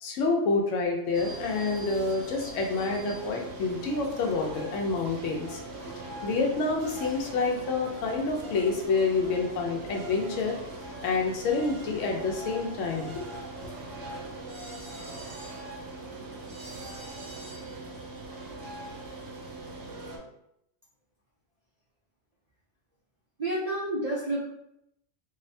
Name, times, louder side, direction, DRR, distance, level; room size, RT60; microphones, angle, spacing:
voice 1, 0.0-5.6 6.0-10.6 11.0-13.3 13.6-13.7, left 4 dB, 80° left, 1 dB, 0.9 m, -28 dB
sound 1, 1.1-20.2, right 2 dB, 85° right, 0.9 m, -41 dB
voice 2, 23.4-24.4, right 1 dB, 55° right, -7 dB, 0.4 m, -29 dB
2.6 x 2.1 x 2.6 m, 0.80 s
omnidirectional pair, 1.3 m